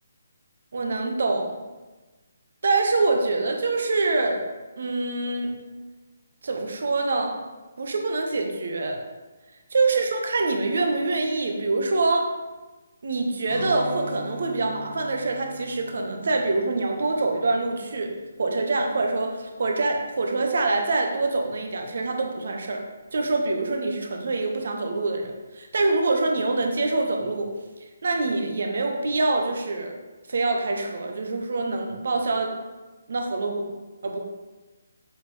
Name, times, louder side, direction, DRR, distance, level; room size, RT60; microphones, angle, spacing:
voice 1, 0.7-1.6 2.6-4.4 4.8-5.5 6.4-7.4 7.8-9.0 9.7-12.3 13.0-18.1 18.4-22.8 23.1-27.5 28.0-29.9 30.3-32.5 33.1-33.7 34.0-34.2, right 3 dB, 55° right, 2 dB, 1.2 m, -25 dB
Guitar, 13.5-19.3, left 1 dB, 30° left, 1.8 m, -40 dB
7.7 x 6.2 x 3.2 m, 1.2 s
figure-of-eight pair, 140°, 0 cm